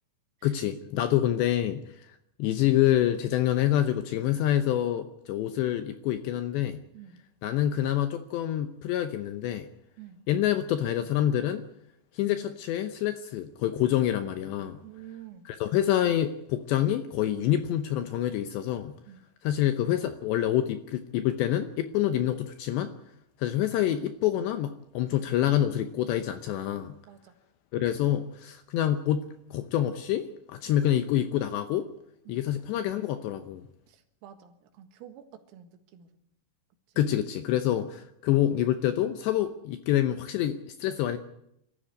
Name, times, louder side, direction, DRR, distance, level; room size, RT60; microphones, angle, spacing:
voice 1, 0.4-1.8 2.4-6.8 7.4-9.7 10.3-11.6 12.1-14.8 15.5-18.9 19.4-22.9 23.4-26.9 27.7-31.9 32.3-33.6 37.0-41.2, left 12 dB, 75° left, 9 dB, 2.6 m, -27 dB
voice 2, 6.9-7.3 10.0-10.2 14.8-15.5 19.1-19.2 27.1-27.3 32.3-32.4 33.9-36.1, right 10 dB, 85° right, 7 dB, 4.4 m, -49 dB
23.5 x 13.5 x 9.6 m, 0.79 s
omnidirectional pair, 5.9 m